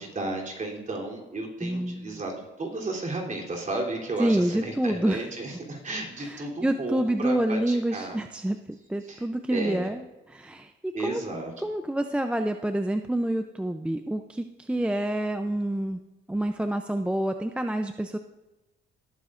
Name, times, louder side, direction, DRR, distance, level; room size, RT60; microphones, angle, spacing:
voice 1, 0.0-8.2 9.1-9.9 10.9-11.7 14.7-14.8, right 2 dB, 40° right, 0 dB, 3.2 m, -33 dB
voice 2, 1.6-2.2 4.2-5.3 6.2-10.0 10.3-11.2 11.6-16.0 16.3-18.2, right 1 dB, 5° right, 7 dB, 0.5 m, -28 dB
18.0 x 9.4 x 2.5 m, 1.1 s
cardioid pair, 90°, 20 cm